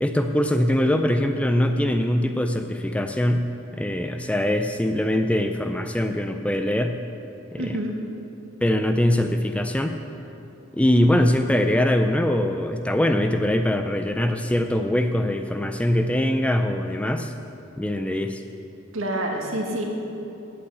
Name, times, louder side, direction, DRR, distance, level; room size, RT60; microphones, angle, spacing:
voice 1, 0.0-3.4 3.7-7.0 7.5-7.8 8.6-10.0 10.7-17.3 17.8-18.4, left 1 dB, 5° left, 6 dB, 0.4 m, -22 dB
voice 2, 7.6-7.9 18.9-19.9, right 1 dB, 80° right, 0 dB, 1.7 m, -27 dB
8.5 x 8.1 x 8.1 m, 2.9 s
head